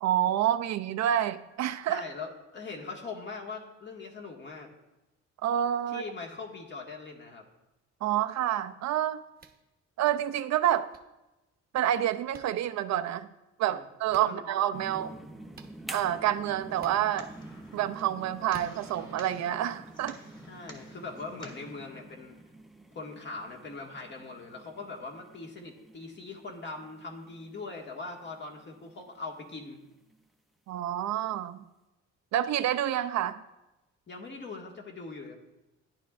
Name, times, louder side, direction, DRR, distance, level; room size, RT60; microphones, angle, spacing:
voice 1, 0.0-2.0 5.4-6.0 8.0-9.2 10.0-10.9 11.7-13.3 13.6-15.1 15.9-17.3 17.7-20.2 30.7-31.6 32.3-33.4, right 11 dB, 65° right, 10 dB, 0.5 m, -28 dB
voice 2, 1.9-4.7 5.9-7.5 13.7-14.4 14.9-15.2 20.5-22.4 22.9-29.8 34.1-35.4, left 3 dB, 40° left, 1 dB, 1.9 m, -41 dB
sound 1, 9.4-9.6 10.9-11.0 12.3-12.5 14.1-14.3 15.5-15.7 16.8-17.0 18.5-18.7, right 5 dB, 30° right, 0.9 m, -49 dB
sound 2, 14.7-29.6 30.1-30.2, right 1 dB, ahead, 0.6 m, -48 dB
sound 3, 16.7-21.7, left 1 dB, 15° left, 2.0 m, -51 dB
14.5 x 10.5 x 2.5 m, 1.0 s
cardioid pair, 115°, 29 cm